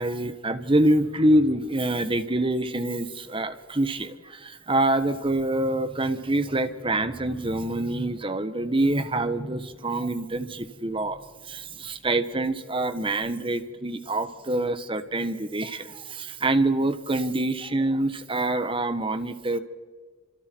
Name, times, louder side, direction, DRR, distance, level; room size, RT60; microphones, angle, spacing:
voice 1, 0.0-11.2 11.4-19.6, right 1 dB, 25° right, 11 dB, 1.4 m, -26 dB
30.0 x 26.5 x 4.7 m, 1.5 s
head